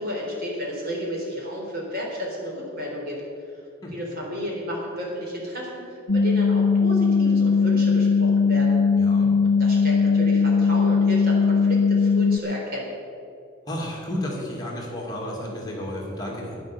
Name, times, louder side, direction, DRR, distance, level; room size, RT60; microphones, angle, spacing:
voice 1, 0.0-3.2 3.9-8.8 9.6-12.9, equal, 50° right, -2 dB, 3.7 m, -32 dB
sound 1, 6.1-12.4, left 5 dB, 80° left, 0.8 m, -19 dB
voice 2, 8.9-9.3 13.7-16.6, left 1 dB, 20° left, -2 dB, 2.3 m, -32 dB
11.5 x 10.5 x 6.8 m, 2.5 s
head